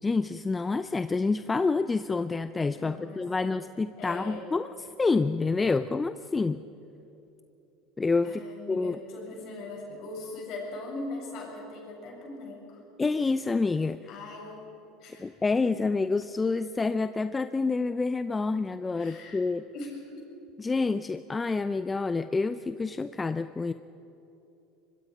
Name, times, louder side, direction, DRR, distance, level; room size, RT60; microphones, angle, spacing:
voice 1, 0.0-4.7 5.0-6.6 8.0-9.0 13.0-14.0 15.2-19.6 20.6-23.7, left 3 dB, 20° left, 12 dB, 0.6 m, -28 dB
voice 2, 2.7-3.7 4.0-4.5 8.2-12.8 14.1-14.7 15.0-15.3 19.0-19.4 19.7-20.3, left 2 dB, 55° left, 0 dB, 7.1 m, -40 dB
24.5 x 22.5 x 5.2 m, 2.9 s
hypercardioid pair, 80°, 0 cm